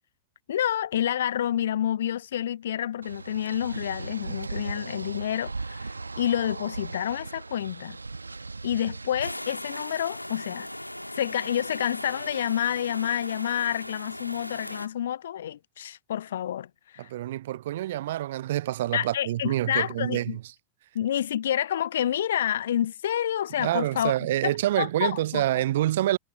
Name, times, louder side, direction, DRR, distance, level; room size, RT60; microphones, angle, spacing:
voice 1, 0.5-8.0 8.6-10.7 11.1-16.7 16.9-17.1 18.9-20.4 20.9-24.1 24.4-25.4, left 10 dB, 60° left, 0.3 m, -28 dB
sound 1, 3.0-9.3, right 3 dB, 80° right, 1.3 m, -37 dB
sound 2, 9.2-14.9, left 1 dB, 90° left, 2.3 m, -38 dB
voice 2, 17.0-20.4 23.6-26.2, right 14 dB, 55° right, 0.5 m, -27 dB
figure-of-eight pair, 90°, 0 cm